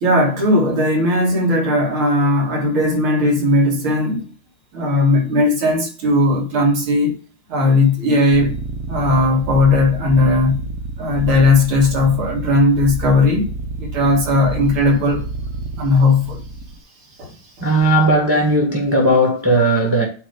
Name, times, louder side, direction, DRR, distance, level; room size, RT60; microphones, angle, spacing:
voice 1, 0.0-4.3 4.7-7.1 7.5-8.5 8.9-10.6 11.0-13.5 13.8-15.2 15.8-16.4 17.2-17.3, left 2 dB, 85° right, 3.0 m, -17 dB
sound 1, 8.3-16.8, right 2 dB, 50° right, 1.2 m, -29 dB
voice 2, 17.6-20.1, right 1 dB, 5° right, 1.6 m, -16 dB
9.0 x 3.1 x 6.6 m
omnidirectional pair, 2.3 m